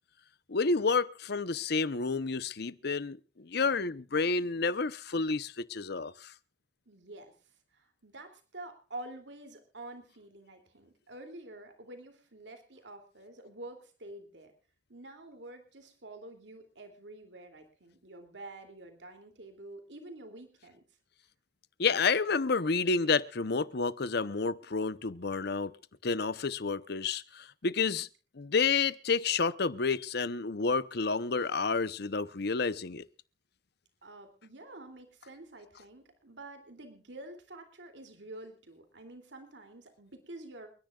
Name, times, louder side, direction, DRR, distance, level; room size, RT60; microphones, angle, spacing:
voice 1, 0.5-6.3 21.8-25.7 26.0-28.1 28.3-33.1, left 4 dB, 65° left, 0.8 m, -30 dB
voice 2, 6.9-7.3 7.7-14.5 14.9-20.8 25.2-25.5 34.0-40.7, right 2 dB, 80° right, 2.8 m, -48 dB
29.5 x 10.5 x 2.4 m
head